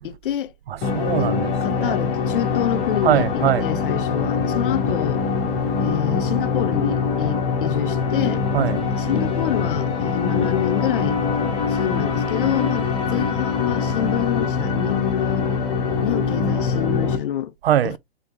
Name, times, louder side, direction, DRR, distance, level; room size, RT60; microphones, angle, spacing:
voice 1, 0.0-0.5 1.2-1.3 1.6-5.2 5.8-8.4 8.9-11.2 11.7-15.5 16.0-17.5 17.8-18.0, left 11 dB, 55° left, 0.5 m, -27 dB
voice 2, 0.7-2.0 3.0-3.7 5.5-5.9 8.5-9.0 11.5-11.8 15.9-16.0 17.6-18.0, right 10 dB, 65° right, 0.5 m, -23 dB
sound 1, 0.8-17.2, left 5 dB, 25° left, 1.0 m, -23 dB
3.6 x 3.4 x 2.6 m
hypercardioid pair, 130°, 32 cm